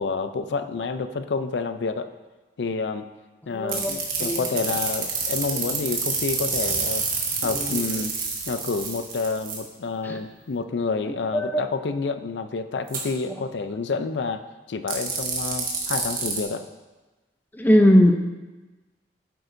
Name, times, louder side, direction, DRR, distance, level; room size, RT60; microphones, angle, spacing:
voice 1, 0.0-2.1 2.6-3.1 3.5-7.1 7.4-8.1 8.5-16.7, left 4 dB, 80° left, 10 dB, 0.5 m, -29 dB
voice 2, 3.5-3.9 4.2-4.4 11.3-11.6 17.6-18.1, equal, 10° left, 4 dB, 0.6 m, -18 dB
sound 1, 3.7-9.6 12.9-13.0 14.9-16.4, right 5 dB, 55° right, 1.5 m, -28 dB
9.2 x 8.0 x 2.6 m, 1.2 s
head